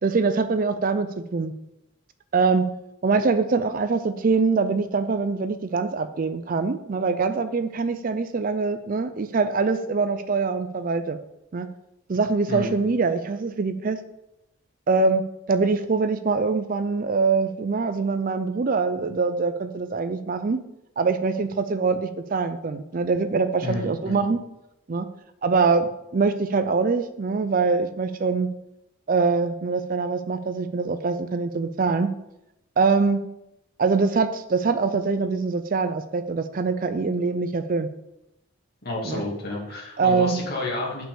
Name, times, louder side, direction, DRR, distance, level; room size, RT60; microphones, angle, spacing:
voice 1, 0.0-1.5 2.3-2.7 3.0-11.2 11.5-11.7 12.1-14.0 14.9-15.2 15.5-20.6 21.0-24.4 24.9-25.1 25.4-28.5 29.1-32.1 32.8-33.2 33.8-37.9 39.1-39.2 40.0-40.4, right 4 dB, 40° right, 10 dB, 0.4 m, -23 dB
voice 2, 23.6-24.2 38.8-41.0, left 2 dB, 45° left, -3 dB, 2.4 m, -30 dB
5.7 x 5.5 x 6.8 m, 0.86 s
head